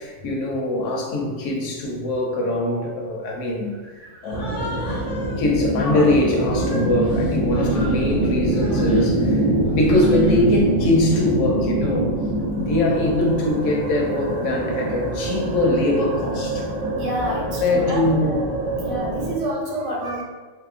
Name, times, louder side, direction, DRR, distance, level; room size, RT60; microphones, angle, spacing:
voice 1, 0.0-3.7 4.2-4.5 5.4-9.5 9.7-12.1 12.7-16.6 17.6-18.3, left 1 dB, 85° left, -1 dB, 1.0 m, -22 dB
voice 2, 4.0-4.4 17.0-18.4 18.8-20.2, right 1 dB, 80° right, -3 dB, 1.0 m, -29 dB
Human voice, 4.2-5.4 5.8-8.1 8.5-9.1 9.7-10.5, left 1 dB, 50° left, 0.4 m, -34 dB
sound 1, 4.3-19.3, right 1 dB, 60° right, 0.5 m, -24 dB
3.1 x 2.8 x 2.4 m, 1.4 s
omnidirectional pair, 1.3 m